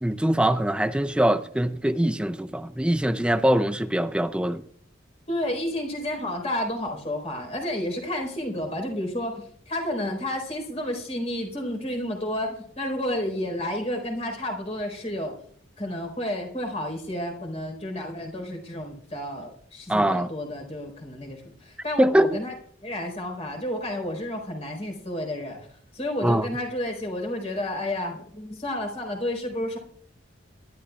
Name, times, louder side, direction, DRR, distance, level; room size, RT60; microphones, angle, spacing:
voice 1, 0.0-4.6 19.9-20.3 22.0-22.4 26.2-26.5, right 1 dB, 5° right, 0.4 m, -23 dB
voice 2, 5.3-15.3 15.8-22.5 22.8-25.6 25.9-29.8, left 1 dB, 35° left, 4.2 m, -31 dB
23.0 x 12.5 x 2.4 m
head